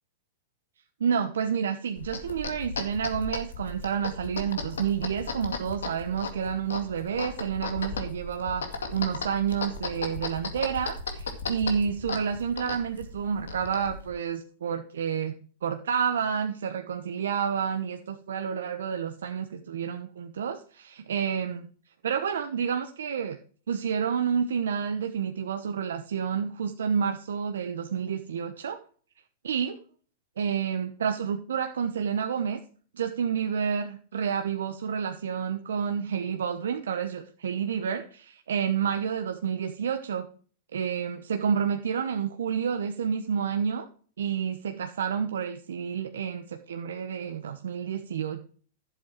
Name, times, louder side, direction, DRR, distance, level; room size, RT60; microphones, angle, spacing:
voice 1, 1.0-21.7 22.0-23.4 23.7-28.8 29.4-29.8 30.4-32.6 32.9-40.3 40.7-43.9 44.2-48.4, right 7 dB, 80° right, 7 dB, 1.0 m, -29 dB
sound 1, 2.0-14.1, left 4 dB, 85° left, 2.0 m, -36 dB
11.5 x 7.9 x 4.5 m, 0.43 s
hypercardioid pair, 115°, 0 cm